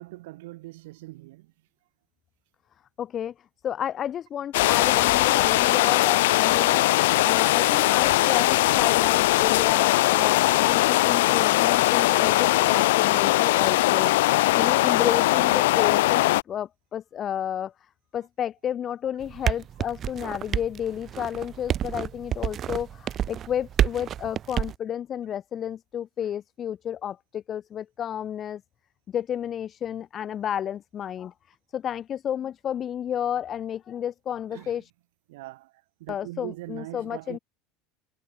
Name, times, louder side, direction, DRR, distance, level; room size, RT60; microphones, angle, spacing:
voice 1, 0.0-1.5 24.2-24.3 34.5-34.8 35.3-35.7 36.0-37.4, right 20 dB, 85° right, 5.8 m, -41 dB
voice 2, 3.0-3.3 3.6-17.7 18.1-28.6 29.1-31.3 31.7-34.8 36.1-37.4, left 9 dB, 30° left, 8.0 m, -31 dB
sound 1, 4.5-16.4, left 18 dB, 90° left, 2.1 m, -20 dB
sound 2, 19.2-24.8, right 10 dB, 30° right, 2.4 m, -29 dB
supercardioid pair, 150°, 0 cm